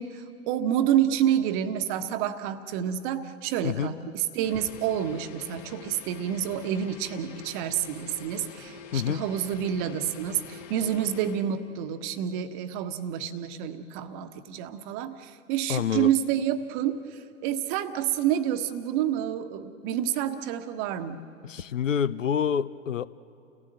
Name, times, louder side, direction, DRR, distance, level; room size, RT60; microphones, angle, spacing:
voice 1, 0.0-21.2, right 10 dB, 40° right, 9 dB, 1.2 m, -28 dB
sound 1, 4.4-11.5, left 5 dB, 40° left, 2.1 m, -45 dB
voice 2, 15.7-16.1 21.4-23.1, left 8 dB, 75° left, 18 dB, 0.7 m, -27 dB
30.0 x 17.0 x 7.8 m, 2.5 s
figure-of-eight pair, 95°, 38 cm